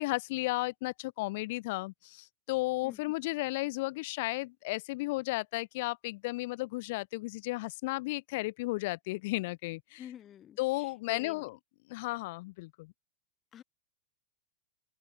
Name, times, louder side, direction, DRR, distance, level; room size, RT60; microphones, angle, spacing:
voice 1, 0.0-10.0 10.6-11.5 11.9-12.9, left 22 dB, 50° left, 0.4 m, -34 dB
voice 2, 10.0-11.5 13.5-13.6, left 10 dB, 30° left, 2.3 m, -49 dB
open air
figure-of-eight pair, 90°, 0 cm